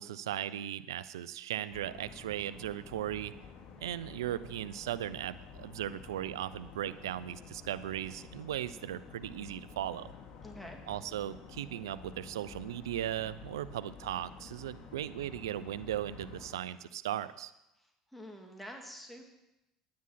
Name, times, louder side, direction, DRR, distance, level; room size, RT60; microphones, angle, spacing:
voice 1, 0.0-3.3 3.8-10.1 10.9-17.5, right 11 dB, 85° right, 15 dB, 0.5 m, -37 dB
sound 1, 1.7-16.6, left 6 dB, 50° left, 2.2 m, -51 dB
voice 2, 10.4-10.8 17.8-19.3, equal, 5° left, 2 dB, 2.2 m, -48 dB
9.7 x 9.6 x 5.7 m, 0.92 s
hypercardioid pair, 70°, 2 cm